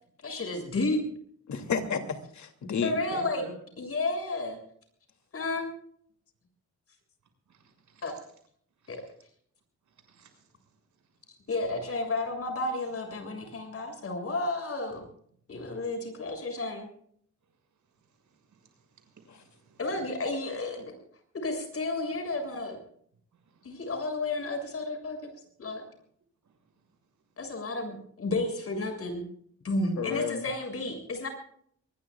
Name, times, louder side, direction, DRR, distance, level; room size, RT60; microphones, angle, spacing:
voice 1, 0.2-1.0 2.8-3.4 3.8-4.6 5.3-5.7 8.0-8.1 8.9-9.0 11.5-15.0 15.5-16.9 19.8-20.9 21.4-22.8 23.6-25.2 25.6-25.8 27.4-29.2 29.6-31.3, left 2 dB, 50° left, 5 dB, 7.0 m, -32 dB
voice 2, 1.5-2.9 19.3-19.4 30.0-30.4, left 6 dB, 70° left, 6 dB, 2.8 m, -31 dB
voice 3, 3.1-3.5 7.5-8.1 8.8-9.0 9.9-10.5 13.2-13.4 15.5-15.8 18.2-19.8 23.5-23.9, right 4 dB, 75° right, 5 dB, 6.6 m, -50 dB
24.0 x 21.5 x 2.4 m, 0.63 s
cardioid pair, 110°, 30 cm